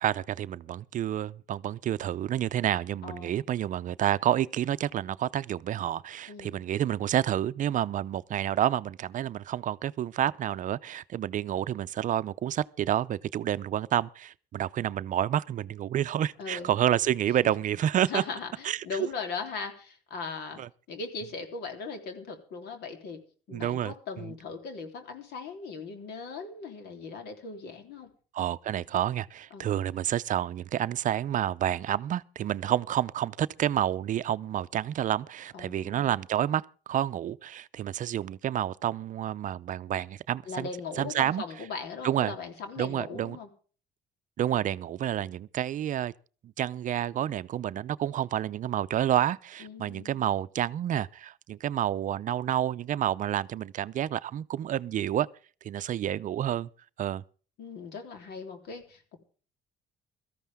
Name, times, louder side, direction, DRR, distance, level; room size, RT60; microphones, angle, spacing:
voice 1, 0.0-18.3 18.6-19.1 20.6-20.7 23.5-24.4 28.3-41.7 42.0-42.4 42.8-43.4 44.4-46.1 46.6-55.3 55.6-56.7 57.0-57.2, right 11 dB, 50° right, 0.5 m, -29 dB
voice 2, 3.0-3.4 6.3-6.6 16.4-16.8 18.1-20.6 20.9-23.2 23.5-28.1 29.5-29.7 35.5-36.1 40.5-43.5 49.6-50.3 57.6-59.2, left 4 dB, 75° left, 3.5 m, -39 dB
17.5 x 14.0 x 3.6 m
cardioid pair, 110°, 17 cm